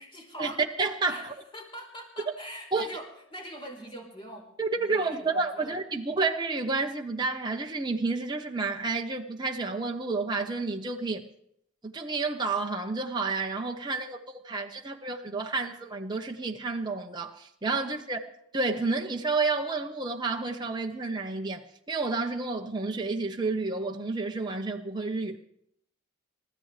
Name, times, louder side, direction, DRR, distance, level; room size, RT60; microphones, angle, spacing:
voice 1, 0.0-0.6 1.1-4.5 4.8-5.8 17.8-18.0, equal, 25° left, 4.1 m, -43 dB
voice 2, 0.8-1.3 2.7-2.9 4.6-11.2 11.8-14.2 14.4-18.2 18.5-25.4, right 3 dB, 20° right, 1.0 m, -30 dB
29.0 x 14.0 x 3.4 m
head